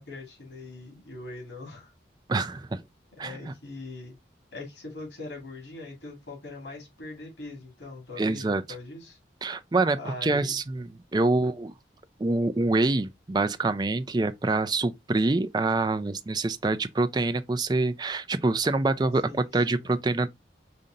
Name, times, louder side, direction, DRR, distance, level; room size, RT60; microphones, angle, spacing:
voice 1, 0.0-1.9 3.2-4.2 4.5-9.2 10.0-10.6 19.3-19.8, left 2 dB, 90° left, 2.3 m, -41 dB
voice 2, 2.3-2.8 3.2-3.5 8.2-8.6 9.4-11.7 12.2-20.3, right 2 dB, 25° right, 0.3 m, -26 dB
5.2 x 2.8 x 3.7 m
head